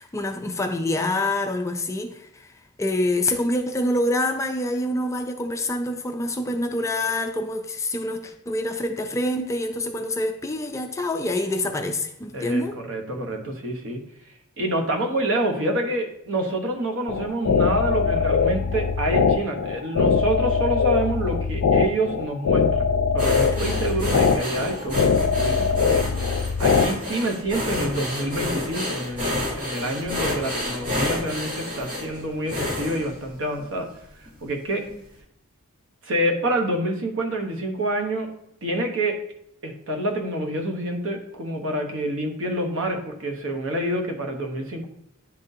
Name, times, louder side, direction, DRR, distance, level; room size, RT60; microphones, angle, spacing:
voice 1, 0.0-2.5 2.8-12.8 23.6-23.8 34.9-35.0, left 1 dB, 15° left, 5 dB, 0.4 m, -26 dB
voice 2, 12.3-14.0 14.6-26.1 26.6-33.9 34.4-34.8 36.0-38.3 38.6-39.2 39.6-44.9, right 1 dB, 60° right, 3 dB, 1.0 m, -27 dB
sound 1, 17.1-26.9, left 5 dB, 85° left, 0.5 m, -22 dB
sound 2, 23.2-33.8 34.3-34.5 34.8-34.9, left 1 dB, 35° right, 1.8 m, -29 dB
10.5 x 3.9 x 2.7 m, 0.75 s
head